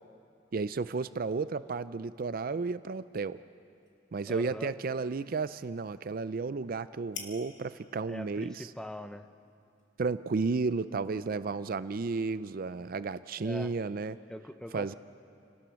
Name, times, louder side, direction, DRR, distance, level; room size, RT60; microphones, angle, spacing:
voice 1, 0.5-3.4 4.1-8.7 10.0-14.2 14.7-14.9, right 4 dB, 50° right, 14 dB, 0.4 m, -33 dB
sound 1, 2.8-10.5, left 6 dB, 75° left, 2.3 m, -53 dB
voice 2, 4.3-4.7 8.1-9.3 13.4-13.7 14.3-15.0, equal, 5° left, 8 dB, 0.7 m, -42 dB
29.5 x 18.5 x 6.3 m, 2.5 s
head